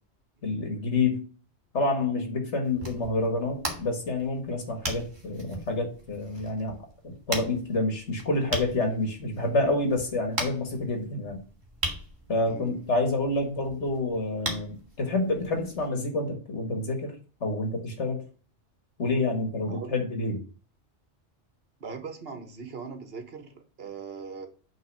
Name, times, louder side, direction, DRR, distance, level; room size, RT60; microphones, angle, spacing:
voice 1, 0.4-1.2 1.7-6.8 7.0-11.4 12.3-17.2 17.4-18.2 19.0-20.4, left 2 dB, 80° left, 1.9 m, -28 dB
sound 1, 2.6-15.9, right 1 dB, 45° right, 2.2 m, -39 dB
voice 2, 12.4-12.8 19.7-19.9 21.8-24.5, right 5 dB, 60° right, 1.5 m, -40 dB
8.8 x 3.9 x 5.2 m
omnidirectional pair, 1.2 m